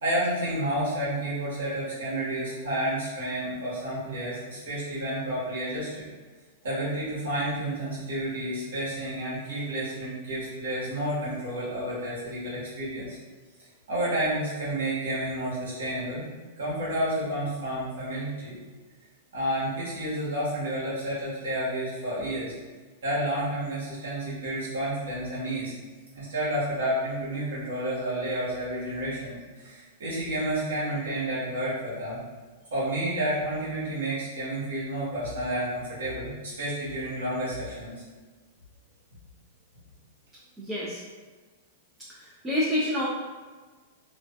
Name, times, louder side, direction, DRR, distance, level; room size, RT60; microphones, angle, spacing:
voice 1, 0.0-6.1 6.6-13.2 13.9-16.2 16.6-18.6 19.3-22.5 23.0-25.7 26.1-32.2 32.7-38.0, right 1 dB, 75° right, -8 dB, 1.2 m, -30 dB
voice 2, 40.6-41.0 42.1-43.1, left 1 dB, 15° right, -6 dB, 0.5 m, -28 dB
2.4 x 2.3 x 2.3 m, 1.4 s
hypercardioid pair, 115°, 0 cm